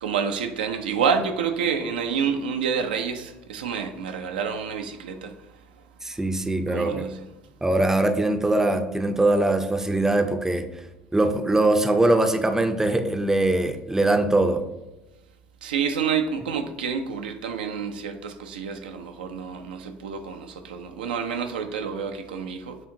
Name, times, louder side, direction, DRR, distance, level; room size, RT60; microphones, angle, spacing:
voice 1, 0.0-5.3 6.7-7.2 15.6-22.8, right 6 dB, 90° right, 6 dB, 0.4 m, -28 dB
voice 2, 6.0-7.0 7.6-10.7 11.1-14.6, right 2 dB, 10° right, 7 dB, 0.4 m, -22 dB
7.3 x 2.4 x 2.6 m, 1.0 s
hypercardioid pair, 70°, 5 cm